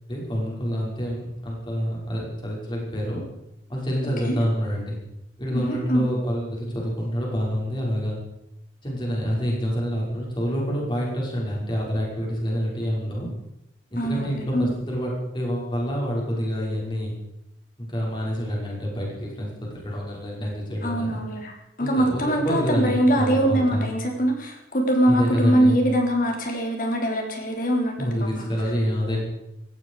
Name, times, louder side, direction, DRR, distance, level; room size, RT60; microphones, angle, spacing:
voice 1, 0.1-3.2 3.7-5.0 5.4-8.2 8.8-13.3 13.9-17.1 17.8-21.2 21.8-23.9 25.1-25.8 28.0-29.2, equal, 25° left, -3 dB, 6.1 m, -27 dB
voice 2, 5.5-6.1 14.0-14.7 20.8-28.5, right 1 dB, 50° left, 2 dB, 4.0 m, -23 dB
17.5 x 16.0 x 5.0 m, 0.84 s
head